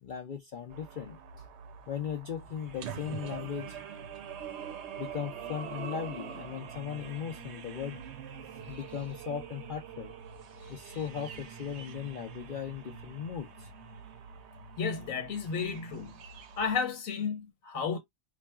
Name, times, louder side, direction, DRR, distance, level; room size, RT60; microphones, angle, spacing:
voice 1, 0.0-1.2 1.9-3.8 5.0-8.0 8.7-10.1 10.7-13.7, left 8 dB, 65° left, 0.5 m, -38 dB
sound 1, 0.7-16.8, right 7 dB, 65° right, 0.8 m, -44 dB
voice 2, 14.8-16.1 16.6-18.0, left 6 dB, 85° left, 1.2 m, -32 dB
4.1 x 2.2 x 2.3 m
omnidirectional pair, 1.4 m